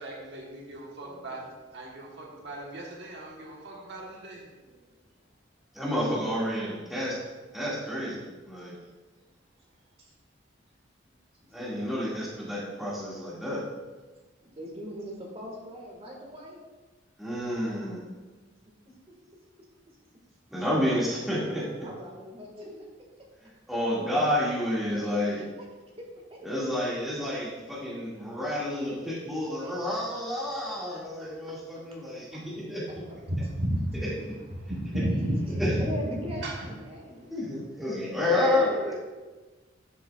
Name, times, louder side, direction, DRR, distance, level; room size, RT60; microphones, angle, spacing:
voice 1, 0.0-4.5 33.3-33.8 34.5-35.7 36.4-36.5 37.2-37.3, right 1 dB, 65° right, -2 dB, 1.3 m, -33 dB
voice 2, 1.0-1.4 4.7-4.8 8.8-8.9 10.0-10.1 11.4-11.5 14.4-16.6 21.8-22.9 24.9-25.4 26.0-26.4 29.3-29.4 29.6-29.9 31.2-31.8 32.1-32.5 33.1-33.2 35.2-37.3 37.6-37.7 38.3-39.0, equal, 30° right, -1 dB, 1.8 m, -41 dB
voice 3, 5.7-7.2 7.5-8.2 8.5-8.7 11.5-13.6 17.2-18.0 20.5-21.7 23.7-25.4 26.4-32.8 35.6-35.8 37.3-39.0, left 1 dB, ahead, -8 dB, 2.1 m, -29 dB
11.5 x 6.8 x 2.4 m, 1.3 s
head